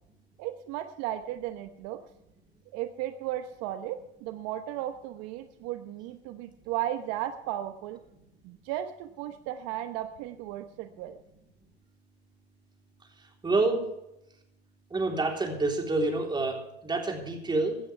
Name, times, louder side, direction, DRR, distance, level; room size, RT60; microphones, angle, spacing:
voice 1, 0.4-2.0 2.7-8.0 8.4-11.2, right 12 dB, 50° right, 9 dB, 1.0 m, -35 dB
voice 2, 13.4-13.8 14.9-17.8, right 3 dB, 15° right, 1 dB, 3.6 m, -28 dB
17.0 x 12.0 x 3.4 m, 0.84 s
hypercardioid pair, 110°, 32 cm